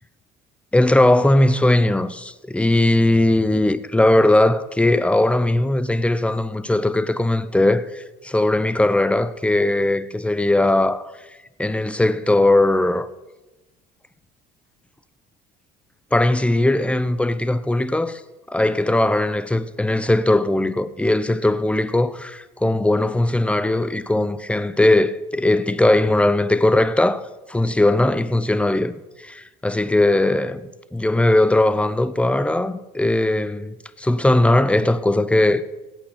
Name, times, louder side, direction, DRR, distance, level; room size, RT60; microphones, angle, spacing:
voice 1, 0.7-11.1 11.6-13.1 16.1-18.2 18.5-28.9 29.2-35.6, left 1 dB, 5° left, 0.8 m, -19 dB
16.5 x 9.0 x 5.9 m
supercardioid pair, 90°, 19 cm